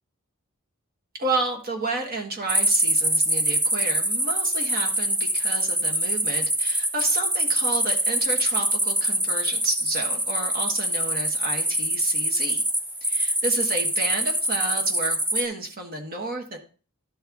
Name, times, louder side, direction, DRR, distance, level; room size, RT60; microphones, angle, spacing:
voice 1, 1.1-12.6 13.0-16.6, right 2 dB, 45° right, 3 dB, 1.4 m, -31 dB
sound 1, 2.5-15.5, right 1 dB, 10° right, 0.8 m, -24 dB
12.0 x 4.4 x 3.5 m, 0.38 s
head